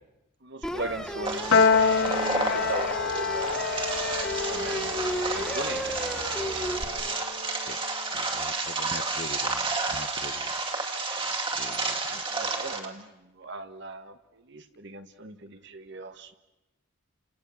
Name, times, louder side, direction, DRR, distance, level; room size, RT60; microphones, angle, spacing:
voice 1, 0.4-3.8 4.4-4.9 5.3-6.0 6.9-7.2 11.7-16.3, right 2 dB, 55° right, 9 dB, 1.5 m, -39 dB
sound 1, 0.6-6.8, equal, 5° left, 2.3 m, -34 dB
sound 2, 1.2-12.9, right 3 dB, 25° right, 2.3 m, -31 dB
Piano, 1.5-8.0, left 5 dB, 85° left, 1.4 m, -28 dB
voice 2, 8.1-10.6 11.0-12.0, left 3 dB, 45° left, 15 dB, 0.9 m, -43 dB
29.5 x 28.0 x 7.1 m, 0.98 s
head